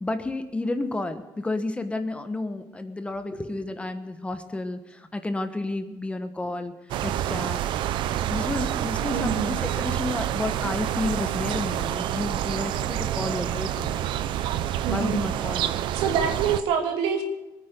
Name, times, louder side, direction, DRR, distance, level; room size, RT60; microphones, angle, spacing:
voice 1, 0.0-6.7 7.0-7.6 8.3-14.1 14.9-15.8, left 2 dB, 15° left, 9 dB, 1.2 m, -31 dB
sound 1, 6.9-16.6, right 11 dB, 65° right, 0.8 m, -28 dB
voice 2, 9.1-9.6 14.8-15.3 15.9-17.2, right 7 dB, 80° right, 3 dB, 2.6 m, -26 dB
20.5 x 9.3 x 6.7 m, 1.1 s
cardioid pair, 105°, 9 cm